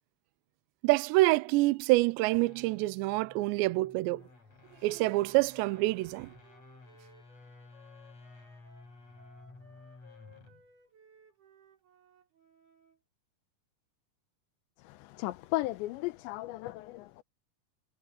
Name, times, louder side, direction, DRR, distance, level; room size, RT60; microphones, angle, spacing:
voice 1, 0.8-4.2 4.8-6.3, right 20 dB, 80° right, 2.8 m, -26 dB
sound 1, 2.2-10.7, left 3 dB, 35° left, 6.8 m, -55 dB
Wind instrument woodwind instrument, 6.0-13.0, right 1 dB, 60° right, 8.7 m, -61 dB
voice 2, 14.8-17.2, left 18 dB, 85° left, 3.1 m, -35 dB
omnidirectional pair, 5.2 m